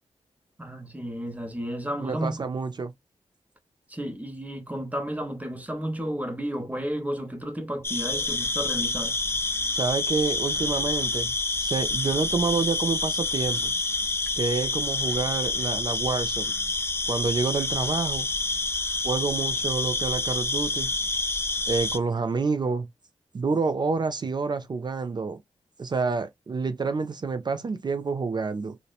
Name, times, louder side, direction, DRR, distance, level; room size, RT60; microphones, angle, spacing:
voice 1, 0.6-2.5 3.9-9.2, equal, 15° right, 0.8 m, -32 dB
voice 2, 2.0-2.9 9.7-11.3 11.6-13.7 14.4-16.5 17.1-18.3 19.0-20.9 21.7-22.9 23.3-25.4 25.8-28.8, right 4 dB, 40° right, 0.4 m, -28 dB
sound 1, 7.8-22.0, left 3 dB, 20° left, 0.4 m, -28 dB
2.8 x 2.1 x 2.3 m
cardioid pair, 65°, 11 cm